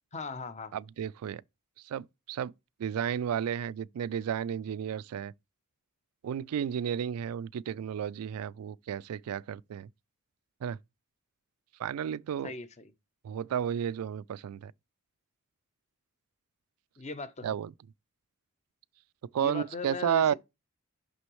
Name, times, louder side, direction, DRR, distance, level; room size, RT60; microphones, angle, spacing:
voice 1, 0.1-0.7 12.4-12.9 17.0-17.6 19.4-20.3, left 3 dB, 30° left, 0.7 m, -39 dB
voice 2, 0.7-1.4 1.9-2.5 2.8-5.3 6.2-9.9 10.6-10.8 11.8-12.5 13.2-14.7 17.4-17.7 19.3-20.3, right 8 dB, 85° right, 0.3 m, -32 dB
6.2 x 6.1 x 3.1 m
head